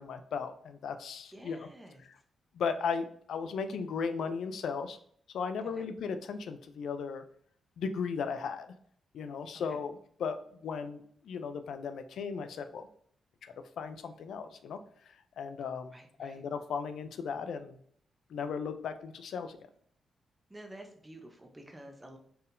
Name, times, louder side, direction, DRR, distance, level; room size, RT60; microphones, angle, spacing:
voice 1, 0.0-1.7 2.5-5.0 5.3-7.2 7.8-8.7 9.1-9.9 10.2-12.9 13.4-14.8 15.4-15.9 16.2-17.8 18.3-19.6, left 5 dB, 75° left, 9 dB, 0.4 m, -36 dB
voice 2, 1.3-2.1 5.6-5.9 9.5-9.8 15.9-16.4 20.5-22.2, right 1 dB, 10° right, 4 dB, 0.6 m, -50 dB
4.4 x 3.5 x 2.6 m, 0.63 s
wide cardioid pair, 160°, 0 cm